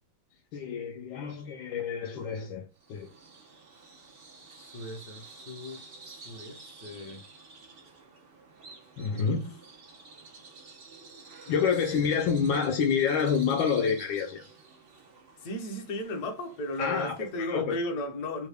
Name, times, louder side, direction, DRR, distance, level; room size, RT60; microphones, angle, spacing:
voice 1, 0.5-3.1 9.0-9.5 11.5-14.4 16.8-17.2 17.5-17.8, left 6 dB, 75° left, 1.3 m, -28 dB
Bird vocalization bird call bird song, 2.8-17.6, right 4 dB, 85° right, 0.5 m, -50 dB
voice 2, 4.6-7.2 9.1-9.4 11.5-11.7 15.4-18.5, left 1 dB, 55° left, 1.2 m, -36 dB
3.6 x 2.2 x 3.3 m
omnidirectional pair, 2.3 m